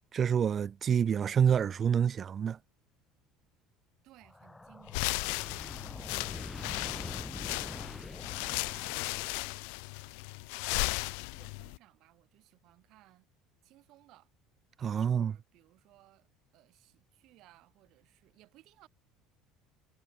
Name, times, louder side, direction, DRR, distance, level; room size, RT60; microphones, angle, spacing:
voice 1, 0.1-2.6 14.8-15.3, right 8 dB, 40° right, 0.3 m, -27 dB
voice 2, 4.0-5.3 5.5-9.5 10.0-13.3 13.6-14.3 14.9-18.9, right 17 dB, 60° right, 3.2 m, -62 dB
sound 1, 4.2-9.7, left 2 dB, 10° left, 2.2 m, -45 dB
sound 2, 4.9-11.8, left 40 dB or more, 70° left, 0.5 m, -36 dB
hypercardioid pair, 70°, 0 cm